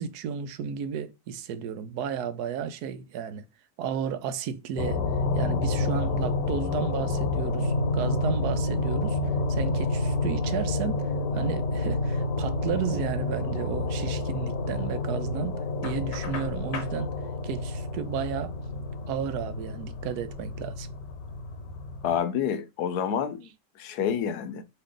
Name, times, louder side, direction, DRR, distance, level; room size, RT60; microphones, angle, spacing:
voice 1, 0.0-3.4 3.8-5.0 5.3-9.2 9.5-11.1 11.3-17.1 17.4-18.6 19.1-20.9, right 7 dB, 70° right, 1.1 m, -33 dB
sound 1, 4.8-22.2, left 3 dB, 90° left, 1.5 m, -30 dB
sound 2, 7.6-19.8, equal, 90° right, 1.4 m, -33 dB
Knock, 15.8-17.0, left 4 dB, 50° left, 1.0 m, -38 dB
voice 2, 22.0-24.6, left 8 dB, 70° left, 1.1 m, -29 dB
4.5 x 3.0 x 3.7 m
omnidirectional pair, 1.8 m